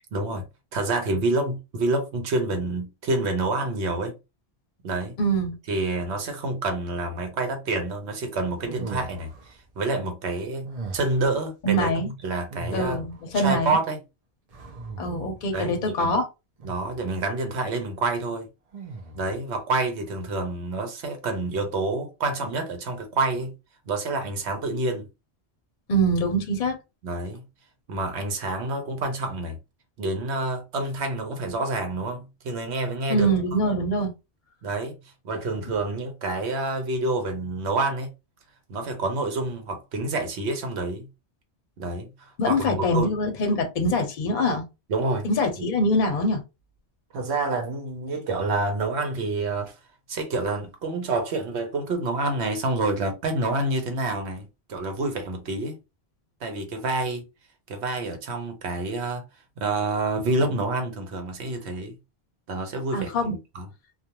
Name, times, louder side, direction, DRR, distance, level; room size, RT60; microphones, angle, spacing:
voice 1, 0.1-0.4 0.7-4.1 4.8-5.2 5.7-13.0 13.3-14.0 15.5-16.2 16.6-18.5 19.1-23.5 23.9-25.1 27.0-27.4 27.9-29.6 30.0-33.3 34.6-35.0 35.2-38.1 38.7-41.1 41.8-43.1 44.9-45.3 45.6-45.7 47.1-49.8 50.1-55.8 56.4-57.2 57.7-59.2 59.6-62.0 62.5-63.7, right 2 dB, 80° right, 1.0 m, -28 dB
voice 2, 5.2-5.6 11.6-12.1 12.7-13.8 15.0-16.3 25.9-26.8 33.1-34.1 42.4-44.6 45.2-46.4 62.9-63.4, equal, 50° left, 0.7 m, -24 dB
sound 1, 8.6-9.5 10.6-11.4 12.5-13.3 14.5-15.5 16.6-17.1 18.7-19.4, right 3 dB, 45° right, 0.6 m, -38 dB
2.4 x 2.2 x 2.8 m
omnidirectional pair, 1.1 m